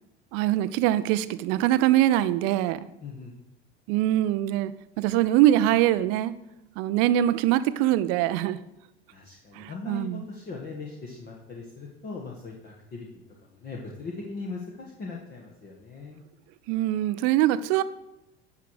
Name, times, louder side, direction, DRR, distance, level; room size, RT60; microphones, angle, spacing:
voice 1, 0.3-2.9 3.9-4.7 5.0-6.3 6.8-8.6 9.5-10.2 16.7-17.8, right 13 dB, 50° right, 14 dB, 0.6 m, -23 dB
voice 2, 3.0-3.3 9.1-13.2 13.5-16.2, left 4 dB, 30° left, -2 dB, 1.5 m, -39 dB
10.5 x 5.9 x 4.8 m, 0.89 s
figure-of-eight pair, 70°, 32 cm